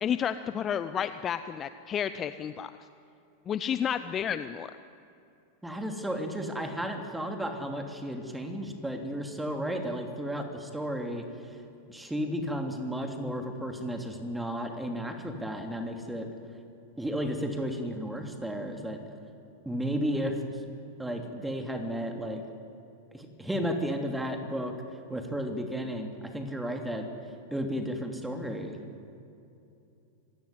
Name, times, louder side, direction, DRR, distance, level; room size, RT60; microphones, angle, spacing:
voice 1, 0.0-2.7 3.5-4.7, left 8 dB, 25° left, 12 dB, 0.7 m, -31 dB
voice 2, 5.6-11.2 11.9-16.3 17.0-19.0 19.6-20.6 21.0-22.4 23.1-24.7 25.1-27.1 27.5-28.8, equal, 5° right, 4 dB, 2.9 m, -33 dB
26.5 x 17.0 x 9.7 m, 2.7 s
figure-of-eight pair, 90°, 0 cm